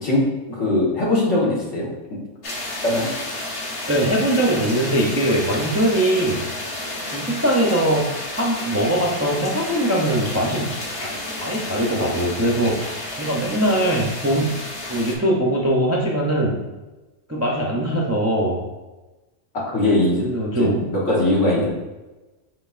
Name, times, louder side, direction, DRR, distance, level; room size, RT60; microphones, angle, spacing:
voice 1, 0.0-2.2 2.8-3.1 19.5-20.2 20.6-21.7, left 1 dB, 80° left, -4 dB, 1.6 m, -21 dB
sound 1, 2.4-15.2, left 1 dB, 60° left, 1.0 m, -31 dB
voice 2, 3.9-6.4 7.1-10.7 11.0-14.6 14.9-16.6 17.3-18.6 20.2-20.8 21.6-21.7, right 1 dB, 25° right, -3 dB, 0.3 m, -21 dB
5.6 x 3.8 x 2.4 m, 1.1 s
omnidirectional pair, 1.2 m